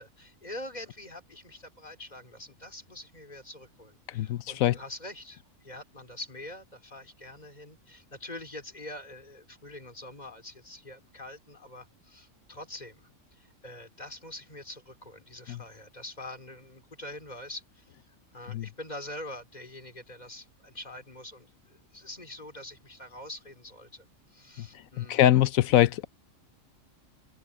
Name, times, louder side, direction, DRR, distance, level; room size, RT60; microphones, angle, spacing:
voice 1, 0.0-17.9 18.3-25.4, left 1 dB, 30° left, 2.9 m, -45 dB
voice 2, 4.1-4.8 15.5-15.6 18.5-18.7 24.6-24.7 25.0-26.1, left 13 dB, 90° left, 1.1 m, -23 dB
omnidirectional pair, 1.4 m